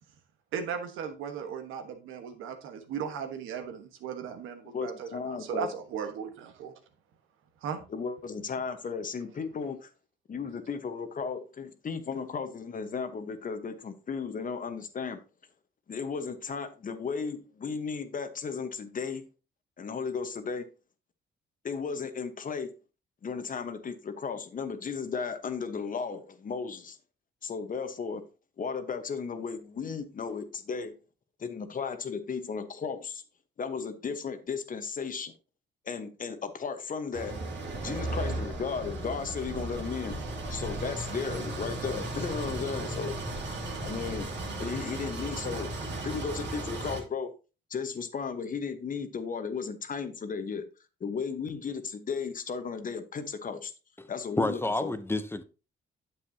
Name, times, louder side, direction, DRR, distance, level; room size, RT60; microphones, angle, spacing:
voice 1, 0.5-6.7 7.6-7.8, right 7 dB, 90° right, 1.3 m, -37 dB
voice 2, 4.7-5.7 7.9-9.9 10.3-15.2 15.9-19.3 19.8-20.7 21.6-22.7 23.2-27.0 27.4-28.3 28.6-31.0 31.4-33.2 33.6-35.3 35.9-37.4 37.8-40.2 40.5-43.2 43.8-44.3 44.6-45.7 46.0-47.3 47.7-50.7 51.0-53.7 54.1-54.9, left 5 dB, 45° left, 1.1 m, -35 dB
sound 1, 37.1-47.0, right 2 dB, 65° right, 2.4 m, -35 dB
voice 3, 54.4-55.4, left 2 dB, 10° left, 0.7 m, -29 dB
8.8 x 7.5 x 2.8 m
cardioid pair, 90°, 20 cm